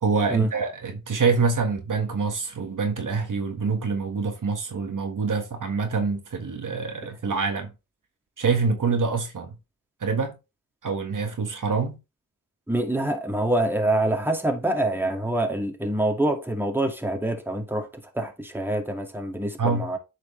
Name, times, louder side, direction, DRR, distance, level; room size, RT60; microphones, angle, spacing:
voice 1, 0.0-7.7 8.4-9.6 10.0-10.3 10.8-12.0 19.6-19.9, right 4 dB, 60° right, 1.6 m, -25 dB
voice 2, 12.7-17.9 18.1-20.0, right 1 dB, 5° right, 2.0 m, -25 dB
8.5 x 5.0 x 3.2 m
cardioid pair, 50°, 36 cm